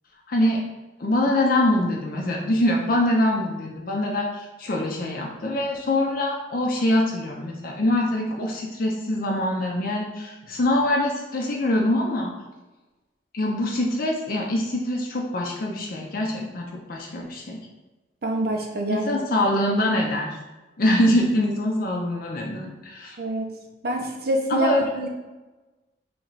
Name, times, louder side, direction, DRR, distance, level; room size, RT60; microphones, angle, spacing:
voice 1, 0.3-0.6 1.0-12.3 13.3-17.6 18.9-20.3 20.8-23.2 24.5-25.1, left 1 dB, 55° left, 0 dB, 0.5 m, -24 dB
voice 2, 18.2-19.1 23.2-23.5 23.8-24.7, right 1 dB, 60° right, 2 dB, 0.6 m, -26 dB
3.4 x 3.1 x 3.9 m, 1.2 s
head